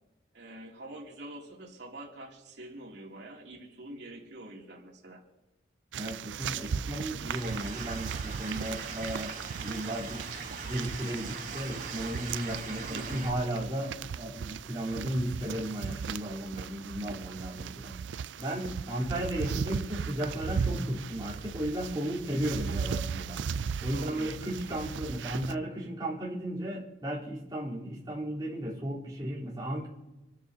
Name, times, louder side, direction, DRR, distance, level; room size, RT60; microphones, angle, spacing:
voice 1, 0.3-5.2 12.9-13.3 23.9-24.3, right 1 dB, 75° right, -2 dB, 2.8 m, -45 dB
sound 1, 5.9-25.5, right 6 dB, 90° right, 0.4 m, -37 dB
voice 2, 6.0-10.2 10.6-29.9, right 1 dB, 25° right, -6 dB, 3.6 m, -35 dB
Stream / Liquid, 7.3-13.3, right 4 dB, 45° right, 3.9 m, -41 dB
27.0 x 13.0 x 2.8 m, 1.1 s
head